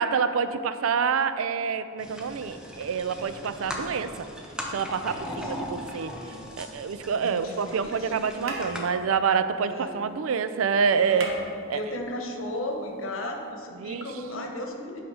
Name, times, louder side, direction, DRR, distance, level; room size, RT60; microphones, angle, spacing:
voice 1, 0.0-4.1 4.7-6.1 6.6-11.3 11.7-11.8 13.8-14.1, right 6 dB, 90° right, 11 dB, 0.4 m, -27 dB
sound 1, 2.0-8.8, equal, 5° right, 0.7 m, -39 dB
voice 2, 4.9-5.7 7.2-8.2 9.6-10.0 10.9-11.3 11.7-15.0, left 1 dB, 75° left, 2 dB, 1.1 m, -36 dB
sound 2, 6.0-7.1 8.0-8.2 8.4-10.3 10.6-10.7 10.9-12.3 13.5-13.6, right 2 dB, 75° right, 1.0 m, -40 dB
8.6 x 5.1 x 4.9 m, 2.5 s
head